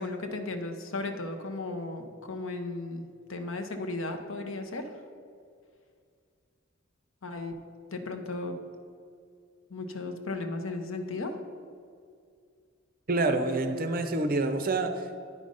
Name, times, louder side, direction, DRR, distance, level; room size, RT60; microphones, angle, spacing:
voice 1, 0.0-4.8 7.2-7.6 7.9-8.6 9.7-11.3, left 2 dB, 70° left, 5 dB, 0.8 m, -35 dB
voice 2, 13.1-15.2, right 2 dB, 45° right, 7 dB, 0.6 m, -27 dB
9.7 x 5.1 x 5.3 m, 2.3 s
head